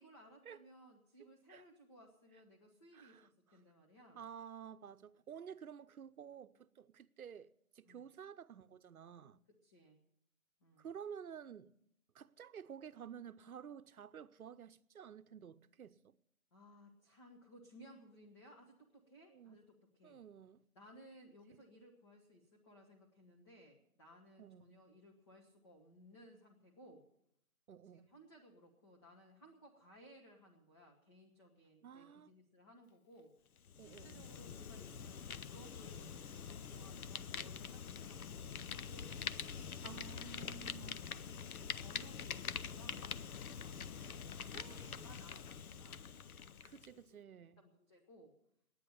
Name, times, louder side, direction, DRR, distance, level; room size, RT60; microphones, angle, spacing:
voice 1, 0.0-4.2 7.8-8.0 9.5-10.0 10.6-10.9 16.5-20.2 20.7-27.1 27.9-33.3 33.8-39.2 40.4-46.1 46.9-47.2 47.6-48.3, equal, 20° left, 0.9 m, -61 dB
voice 2, 2.9-3.6 4.1-7.5 7.7-9.4 10.8-11.7 12.1-16.2 19.3-19.6 20.0-20.6 24.4-24.7 27.7-28.1 31.8-32.3 33.8-34.3 39.6-41.0 44.5-45.1 46.6-47.6, right 8 dB, 80° right, 0.8 m, -52 dB
Fire, 33.6-46.9, left 7 dB, 85° left, 0.7 m, -45 dB
10.0 x 9.4 x 10.0 m
hypercardioid pair, 165°, 42 cm